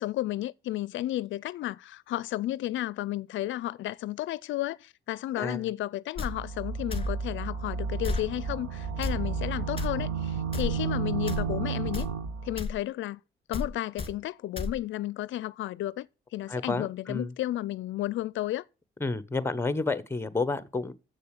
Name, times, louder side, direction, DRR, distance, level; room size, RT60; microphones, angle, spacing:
voice 1, 0.0-12.1 12.4-13.2 13.5-16.1 16.3-18.6, left 15 dB, 75° left, 0.5 m, -33 dB
sound 1, 6.2-6.3 6.9-7.1 8.0-8.3 9.0-9.2 9.8-9.9 10.5-10.7 11.3-11.5 11.9-12.1 12.6-12.7 13.5-13.7 14.0-14.1 14.6-14.7, left 3 dB, 30° left, 2.1 m, -32 dB
sound 2, 6.3-12.6, right 6 dB, 90° right, 1.4 m, -32 dB
voice 2, 16.5-17.3 19.0-20.9, left 3 dB, 10° left, 1.1 m, -30 dB
7.5 x 6.7 x 8.2 m
cardioid pair, 90°, 20 cm